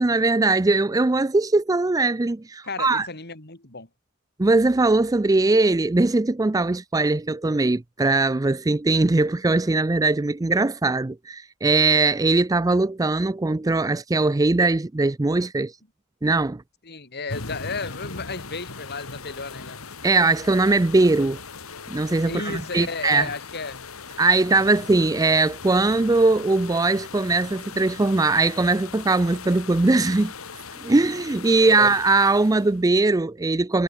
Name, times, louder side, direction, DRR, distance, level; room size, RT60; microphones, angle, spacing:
voice 1, 0.0-3.1 4.4-15.7 16.2-16.6 20.0-21.4 21.9-23.3 24.2-30.3 30.8-33.8, right 3 dB, 15° right, 0.4 m, -20 dB
voice 2, 2.6-3.9 16.8-19.8 22.2-23.8 31.6-31.8, left 4 dB, 50° left, 4.2 m, -34 dB
sound 1, 17.3-32.8, left 4 dB, 80° left, 2.4 m, -39 dB
head